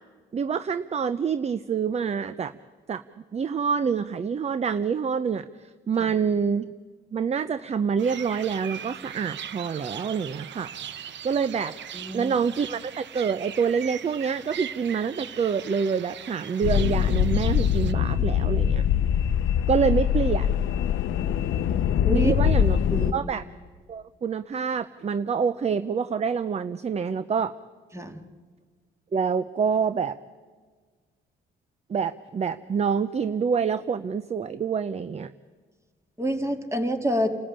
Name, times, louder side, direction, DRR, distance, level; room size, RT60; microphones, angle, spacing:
voice 1, 0.3-2.5 2.9-3.0 3.3-6.7 7.1-10.7 11.2-11.7 12.1-18.9 19.7-20.5 22.1-22.8 23.1-23.4 23.9-27.5 29.1-30.2 31.9-35.3, right 6 dB, 35° right, 15 dB, 0.6 m, -26 dB
sound 1, 8.0-17.9, right 9 dB, 65° right, 1.0 m, -40 dB
voice 2, 11.9-12.3 22.0-22.5 22.9-23.3 27.9-28.2 36.2-37.3, equal, 15° right, 6 dB, 2.3 m, -27 dB
sound 2, 16.6-23.1, left 9 dB, 75° left, 0.8 m, -23 dB
28.5 x 14.0 x 8.8 m, 1.5 s
cardioid pair, 90°, 20 cm